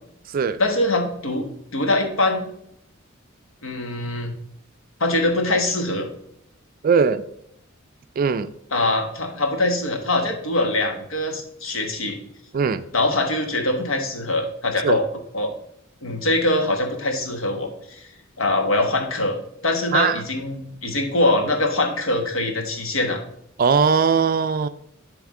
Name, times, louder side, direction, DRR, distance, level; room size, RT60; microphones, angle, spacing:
voice 1, 0.6-1.5 1.7-2.4 3.6-4.3 5.0-6.1 8.7-12.2 12.9-15.0 15.3-15.5 16.0-18.1 18.4-19.4 19.6-23.2, left 2 dB, 80° left, 4 dB, 1.2 m, -23 dB
voice 2, 6.8-7.2 8.2-8.5 12.5-12.8 14.8-15.0 19.9-20.2 23.6-24.7, right 6 dB, 45° right, 13 dB, 0.3 m, -19 dB
10.5 x 3.5 x 3.7 m, 0.74 s
head